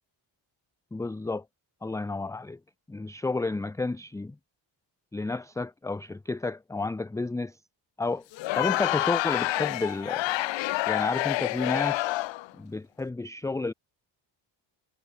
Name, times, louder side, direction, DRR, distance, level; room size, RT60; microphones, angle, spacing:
voice 1, 0.9-1.4 1.8-2.6 2.9-4.3 5.1-7.6 8.0-8.2 8.6-10.3 10.9-12.1 12.6-13.7, left 3 dB, 5° left, 0.4 m, -31 dB
Crowd, 8.3-12.5, left 17 dB, 70° left, 0.7 m, -28 dB
cardioid pair, 120°, 48 cm